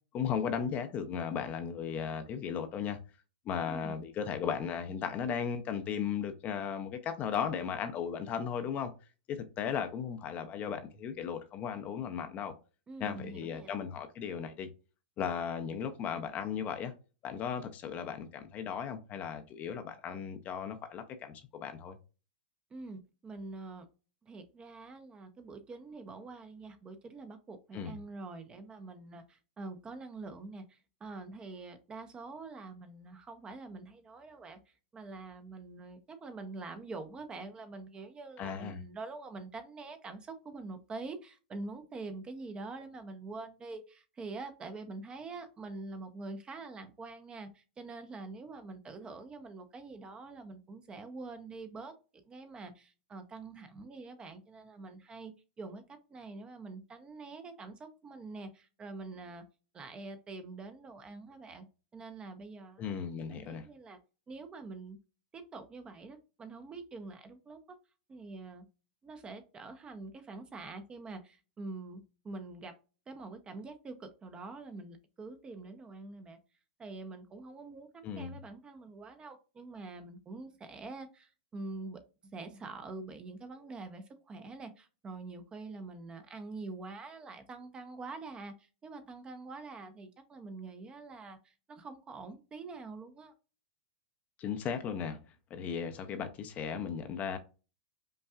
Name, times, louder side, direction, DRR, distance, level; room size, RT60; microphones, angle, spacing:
voice 1, 0.1-3.0 3.5-8.9 9.3-12.5 13.0-14.7 15.2-16.9 17.2-22.0 27.7-27.9 38.4-38.8 62.8-63.7 78.0-78.4 94.4-95.2 95.5-97.4, left 7 dB, 30° left, 0.6 m, -36 dB
voice 2, 3.6-4.0 12.9-13.7 22.7-23.9 24.2-51.9 52.3-55.3 55.6-55.8 56.1-59.4 59.7-61.7 61.9-62.9 63.3-64.0 64.3-65.0 65.3-67.8 68.1-68.7 69.0-72.7 73.1-76.4 76.8-82.0 82.3-93.3, right 3 dB, 20° right, 0.6 m, -45 dB
5.3 x 2.3 x 2.4 m
hypercardioid pair, 135°, 5 cm